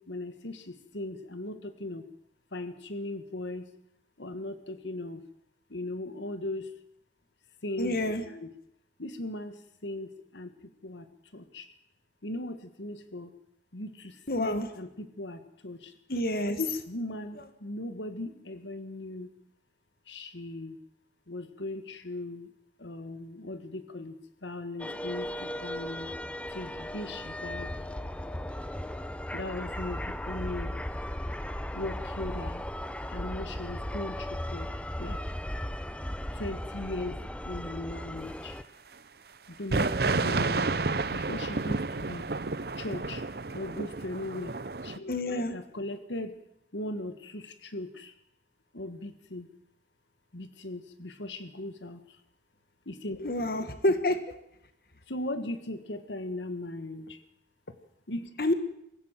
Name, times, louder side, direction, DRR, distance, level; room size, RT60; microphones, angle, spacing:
voice 1, 0.0-2.1 2.5-3.6 4.2-5.2 5.7-6.7 7.6-8.0 8.3-8.5 9.0-10.5 10.8-11.1 11.3-11.7 12.2-13.3 13.7-15.9 16.6-19.3 20.1-20.8 21.3-22.5 22.8-26.1 26.5-27.7 29.3-30.7 31.7-32.6 33.1-34.7 35.0-35.2 36.3-38.6 39.5-40.7 41.1-42.3 42.8-43.3 43.5-44.6 44.8-46.4 46.7-48.1 48.7-49.5 50.3-52.2 52.8-53.7 55.1-57.2 58.1-58.3, left 1 dB, 90° left, 10 dB, 1.7 m, -38 dB
voice 2, 7.8-8.2 14.3-14.7 16.1-16.6 45.1-45.5 53.2-54.2 58.4-58.5, left 1 dB, 55° left, 9 dB, 1.6 m, -28 dB
sound 1, 24.8-38.6, left 1 dB, 5° left, 0.7 m, -36 dB
sound 2, 39.7-45.0, right 3 dB, 60° right, 0.8 m, -30 dB
24.5 x 15.5 x 7.5 m, 0.79 s
head